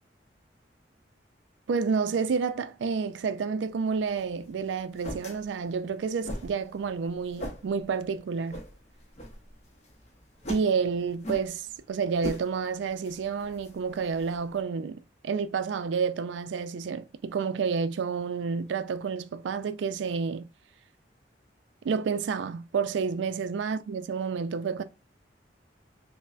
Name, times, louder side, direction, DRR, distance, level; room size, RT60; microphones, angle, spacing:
voice 1, 1.7-8.6 10.5-20.5 21.8-24.8, right 5 dB, 85° right, 0.3 m, -30 dB
sound 1, 3.9-14.6, equal, 40° left, 0.7 m, -42 dB
5.3 x 2.0 x 2.4 m
head